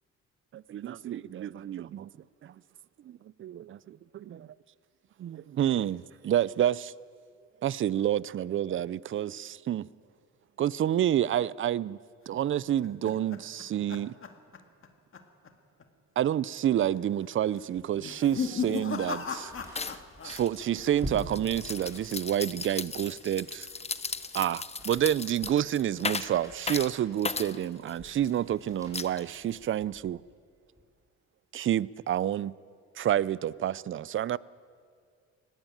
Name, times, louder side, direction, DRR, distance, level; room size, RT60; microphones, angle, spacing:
voice 1, 0.5-2.1 2.4-2.6 3.0-4.5 5.2-6.9 7.6-9.9 10.6-12.0 12.3-14.2 16.2-23.7 24.3-30.2 31.5-32.5 33.0-34.4, right 11 dB, 45° right, 0.5 m, -29 dB
sound 1, 12.4-14.9 15.1-15.5 15.8-15.9 16.7-17.1 17.9-20.4 20.6-21.2, left 6 dB, 45° left, 1.8 m, -36 dB
sound 2, 17.6-30.2 30.7-30.8, equal, 10° right, 5.4 m, -48 dB
sound 3, 18.6-18.7 19.0-19.3 19.7-28.3 28.9-29.6, left 4 dB, 20° left, 0.8 m, -37 dB
19.0 x 15.5 x 9.1 m
cardioid pair, 90°, 30 cm